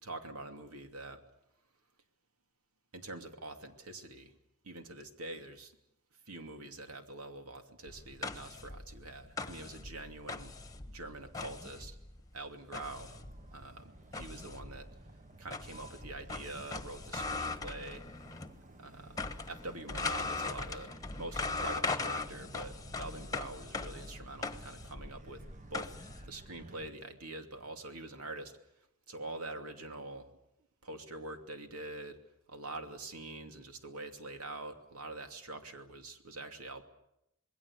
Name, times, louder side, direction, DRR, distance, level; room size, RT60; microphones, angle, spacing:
voice 1, 0.0-1.2 2.9-4.3 4.6-5.7 6.3-10.5 10.9-12.0 12.3-13.1 13.5-14.9 15.4-18.0 18.8-25.4 25.7-25.9 26.3-28.6 29.1-30.3 30.8-32.2 32.5-36.8, right 2 dB, 90° right, 6 dB, 2.7 m, -45 dB
sound 1, 7.9-18.6 18.9-26.3, left 3 dB, 15° left, 1.3 m, -40 dB
Motor vehicle (road), 12.9-26.9, right 2 dB, 35° right, 1.1 m, -55 dB
27.0 x 21.0 x 8.4 m, 0.82 s
head